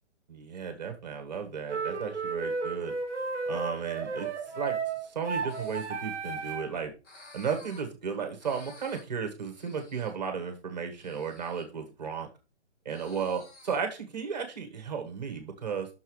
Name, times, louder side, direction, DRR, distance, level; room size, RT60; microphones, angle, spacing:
voice 1, 0.3-2.9 3.5-4.8 5.0-6.9 7.3-12.3 12.8-15.9, right 6 dB, 35° right, 5 dB, 1.4 m, -34 dB
sound 1, 1.7-6.8, right 4 dB, 5° left, 0.8 m, -33 dB
sound 2, 5.5-5.9 7.0-7.8 8.4-9.0 9.5-10.1 11.0-11.6 12.9-13.8, left 3 dB, 90° left, 4.3 m, -52 dB
6.3 x 5.7 x 4.7 m, 0.31 s
hypercardioid pair, 180°, 35 cm